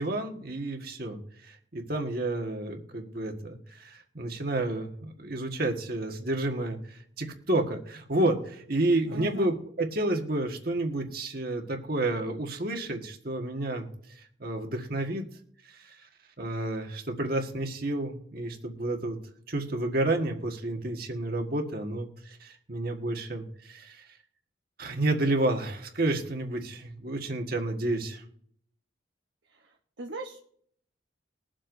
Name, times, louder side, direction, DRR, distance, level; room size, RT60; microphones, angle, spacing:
voice 1, 0.0-15.2 15.6-16.1 16.4-19.2 19.5-24.2 24.8-28.2, right 2 dB, 50° right, 3 dB, 1.6 m, -30 dB
voice 2, 9.1-9.5 29.5-30.4, right 3 dB, 65° right, 1 dB, 1.0 m, -40 dB
22.0 x 7.6 x 2.6 m, 0.64 s
head